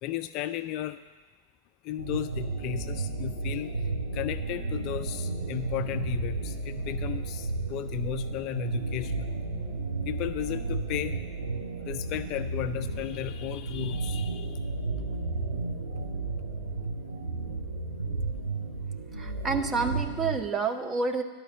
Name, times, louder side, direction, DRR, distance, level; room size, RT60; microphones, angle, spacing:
voice 1, 0.0-1.0 1.8-3.7 4.1-9.3 10.1-11.2 11.8-14.6, left 12 dB, 40° left, 11 dB, 0.3 m, -34 dB
sound 1, 2.0-20.4, right 3 dB, 80° right, 2.5 m, -33 dB
voice 2, 19.2-21.2, right 4 dB, 20° right, 5 dB, 0.9 m, -29 dB
11.5 x 5.1 x 7.5 m, 1.4 s
figure-of-eight pair, 90°, 0 cm